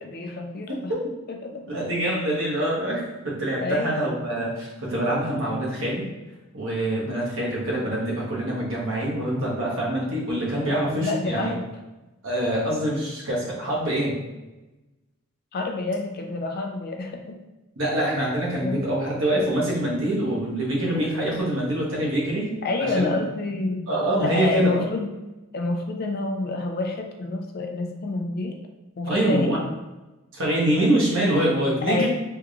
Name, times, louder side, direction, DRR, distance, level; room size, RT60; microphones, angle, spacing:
voice 1, 0.0-0.9 1.3-1.6 3.6-4.0 10.7-11.6 15.5-17.4 18.6-18.8 22.6-23.9 24.2-25.1 25.5-28.6 29.0-29.8 31.9-32.1, left 3 dB, 45° left, 3 dB, 0.4 m, -28 dB
voice 2, 0.7-1.0 1.7-6.1 6.5-11.5 12.2-14.2 17.8-22.6 22.9-23.2 23.9-24.9 29.1-29.6 30.3-32.1, right 1 dB, 65° right, -5 dB, 1.1 m, -25 dB
3.4 x 3.0 x 2.4 m, 1.1 s
head